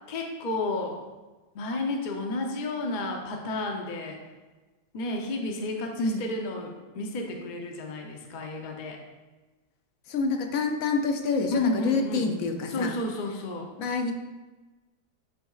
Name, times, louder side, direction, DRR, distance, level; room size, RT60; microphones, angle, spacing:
voice 1, 0.1-1.0 1.5-4.2 4.9-9.0 11.5-12.3 12.7-13.7, left 2 dB, 45° left, 2 dB, 0.6 m, -31 dB
voice 2, 10.1-12.9 13.8-14.1, left 4 dB, 65° left, 4 dB, 1.0 m, -27 dB
10.5 x 4.1 x 2.4 m, 1.2 s
omnidirectional pair, 1.8 m